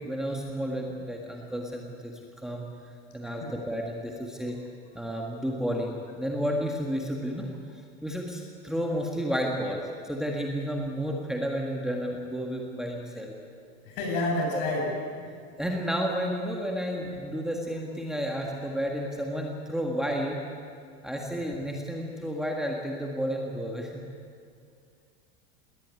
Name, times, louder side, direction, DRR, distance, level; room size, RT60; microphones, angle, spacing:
voice 1, 0.0-2.1 2.4-2.7 3.1-4.6 4.9-7.5 8.0-13.3 14.5-14.6 15.6-20.4 21.0-24.0, equal, ahead, -1 dB, 1.8 m, -31 dB
voice 2, 13.8-14.9 15.2-15.3, left 2 dB, 55° left, 0 dB, 7.9 m, -29 dB
19.5 x 19.0 x 9.8 m, 2.3 s
supercardioid pair, 150°, 32 cm